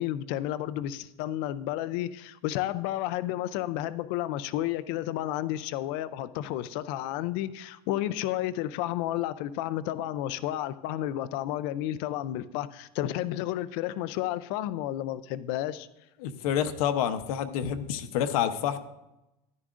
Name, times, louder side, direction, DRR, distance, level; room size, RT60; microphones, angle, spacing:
voice 1, 0.0-15.9, left 13 dB, 40° left, 14 dB, 0.4 m, -31 dB
voice 2, 16.2-18.8, left 9 dB, 60° left, 9 dB, 0.8 m, -28 dB
13.5 x 11.0 x 2.5 m, 0.92 s
supercardioid pair, 180°, 20 cm